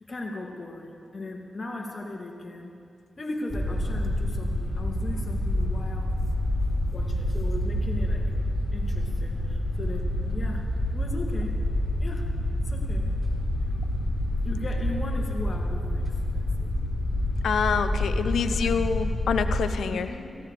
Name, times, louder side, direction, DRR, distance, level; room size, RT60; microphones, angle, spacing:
voice 1, 0.1-2.7 3.2-6.1 6.9-8.3 8.7-10.7 10.9-11.5 12.0-12.3 12.6-13.1 14.4-16.7 18.7-18.9 19.9-20.4, left 2 dB, 40° left, 1 dB, 2.6 m, -37 dB
sound 1, 3.5-19.6, left 1 dB, 10° left, 3.9 m, -27 dB
voice 2, 17.4-20.1, left 6 dB, 80° left, 10 dB, 0.8 m, -26 dB
17.0 x 16.0 x 5.1 m, 2.3 s
cardioid pair, 45°, 0 cm